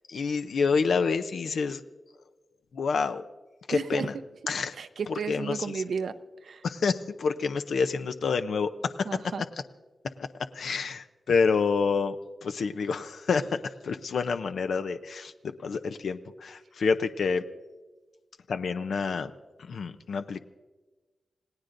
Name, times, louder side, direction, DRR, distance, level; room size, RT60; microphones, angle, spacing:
voice 1, 0.1-1.8 2.7-3.2 3.7-4.1 4.5-4.7 5.3-5.7 6.6-9.1 10.5-12.2 12.4-13.6 13.8-17.4 18.5-19.3 19.6-20.4, left 5 dB, 80° left, 8 dB, 0.6 m, -28 dB
voice 2, 3.7-4.1 4.7-6.1 6.4-6.6 9.0-9.4, right 6 dB, 70° right, 10 dB, 0.6 m, -33 dB
28.0 x 18.0 x 2.6 m, 1.3 s
wide cardioid pair, 175°, 0 cm